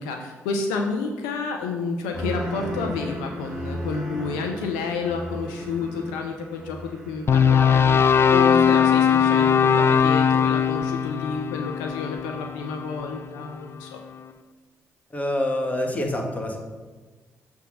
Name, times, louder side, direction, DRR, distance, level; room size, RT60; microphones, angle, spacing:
voice 1, 0.0-14.0, left 4 dB, 85° left, 3 dB, 0.6 m, -30 dB
sound 1, 2.1-9.2 9.6-10.1, equal, ahead, 2.3 m, -36 dB
sound 2, 7.3-13.5, left 7 dB, 40° left, 0.4 m, -20 dB
voice 2, 15.1-16.6, left 1 dB, 25° left, 2 dB, 1.6 m, -26 dB
6.8 x 3.5 x 6.3 m, 1.3 s
hypercardioid pair, 45°, 6 cm